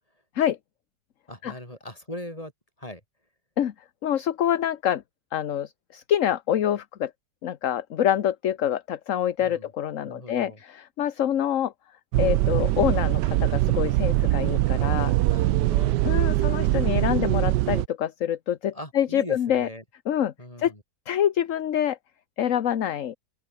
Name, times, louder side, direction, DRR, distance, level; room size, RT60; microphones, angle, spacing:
voice 1, 1.3-2.5 2.8-3.0 9.4-9.7 10.0-10.6 15.3-16.0 16.3-17.1 18.7-19.8 20.4-20.8, left 1 dB, 20° left, 8.1 m, -40 dB
voice 2, 4.0-5.0 5.3-7.1 7.4-11.7 12.2-15.1 16.0-19.7 20.1-20.3 20.6-20.7 21.1-22.0 22.4-23.1, left 10 dB, 55° left, 1.2 m, -26 dB
sound 1, 12.1-17.9, right 16 dB, 80° right, 1.2 m, -22 dB
open air
omnidirectional pair, 1.9 m